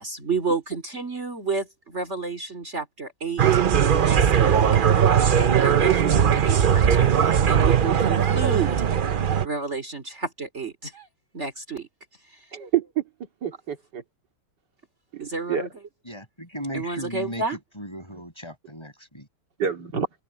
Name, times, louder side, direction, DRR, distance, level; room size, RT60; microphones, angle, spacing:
voice 1, 0.0-3.4 4.0-4.8 5.1-8.9 9.4-11.1 11.3-11.9 12.2-12.5 15.2-15.9 16.7-17.6, right 4 dB, 40° right, 3.5 m, -31 dB
sound 1, 3.4-9.5, right 8 dB, 60° right, 0.5 m, -19 dB
voice 2, 12.5-13.0 13.4-14.0 15.1-15.7 19.6-20.1, right 8 dB, 85° right, 3.0 m, -27 dB
voice 3, 16.0-17.4 17.8-19.3, equal, 15° left, 7.5 m, -36 dB
open air
omnidirectional pair, 1.8 m